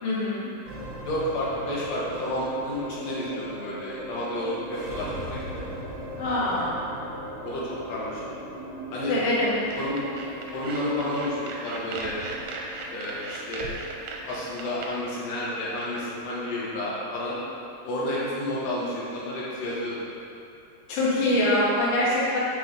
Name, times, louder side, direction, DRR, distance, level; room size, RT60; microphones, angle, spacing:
voice 1, 0.0-0.5 6.2-6.8 9.1-9.5 20.9-22.4, left 1 dB, 60° left, -8 dB, 1.7 m, -24 dB
sound 1, 0.6-19.1, right 1 dB, 50° right, 1.6 m, -40 dB
voice 2, 1.0-5.6 7.4-8.2 8.9-9.1 9.8-10.0 10.5-12.1 12.9-13.7 14.2-17.4 17.8-20.0, left 1 dB, 85° left, -7 dB, 1.4 m, -31 dB
sound 2, 9.7-14.9, right 3 dB, 85° right, 2.6 m, -38 dB
5.9 x 5.9 x 3.8 m, 2.8 s
omnidirectional pair, 4.6 m